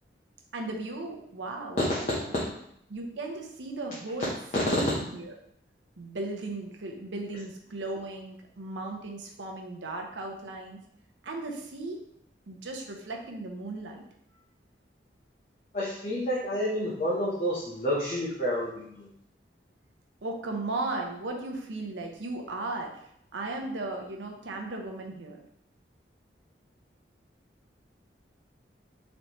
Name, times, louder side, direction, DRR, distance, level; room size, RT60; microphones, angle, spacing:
voice 1, 0.5-2.5 2.9-5.3 6.0-10.8 11.2-12.0 12.5-14.0 20.2-22.9 23.3-25.4, right 2 dB, 90° right, 2 dB, 0.7 m, -36 dB
voice 2, 15.7-19.1, equal, 40° left, -7 dB, 0.7 m, -29 dB
4.1 x 3.2 x 2.9 m, 0.72 s
head